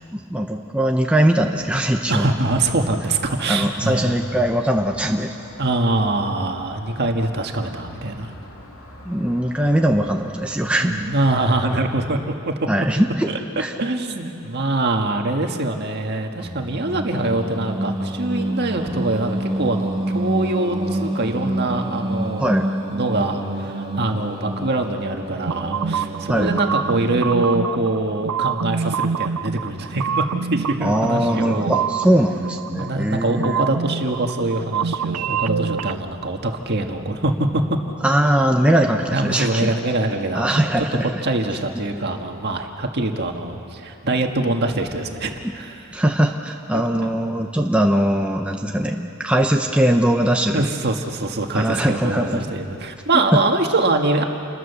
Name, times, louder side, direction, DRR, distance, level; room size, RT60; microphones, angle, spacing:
voice 1, 0.1-2.3 3.5-5.3 9.0-11.0 12.7-13.3 13.6-13.7 22.4-22.7 26.3-26.5 30.8-33.6 38.0-39.7 40.3-41.2 45.4-45.5 45.9-50.7 51.5-52.5 53.1-53.2, right 1 dB, 5° right, 2 dB, 0.9 m, -20 dB
sound 1, 1.4-12.0, equal, 70° left, 3.6 m, -44 dB
voice 2, 2.1-4.2 5.6-8.3 10.8-12.5 13.3-22.5 22.9-30.2 30.5-31.9 32.8-37.6 39.1-40.5 40.8-40.9 41.2-45.9 46.7-46.8 50.5-54.2, right 2 dB, 50° right, 3 dB, 1.9 m, -24 dB
Singing, 16.4-27.5, right 1 dB, 25° right, 1.8 m, -28 dB
sound 2, 25.5-36.0, right 6 dB, 90° right, 0.6 m, -27 dB
29.0 x 21.5 x 7.0 m, 2.6 s
head